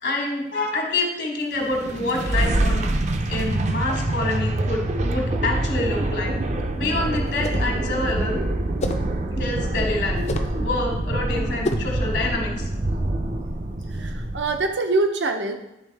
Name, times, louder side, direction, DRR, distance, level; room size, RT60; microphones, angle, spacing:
voice 1, 0.0-2.9 3.3-6.4 6.8-8.4 9.3-10.2 10.6-12.7, left 2 dB, 70° left, 0 dB, 1.4 m, -27 dB
sound 1, 1.6-14.7, right 1 dB, 40° right, 0.5 m, -25 dB
sound 2, 7.3-7.8 8.8-9.1 10.2-10.6 11.6-12.0, left 1 dB, 40° left, 0.5 m, -27 dB
voice 2, 10.0-10.4 13.9-15.6, right 2 dB, 85° right, 5 dB, 0.7 m, -25 dB
10.0 x 3.5 x 3.3 m, 0.92 s
head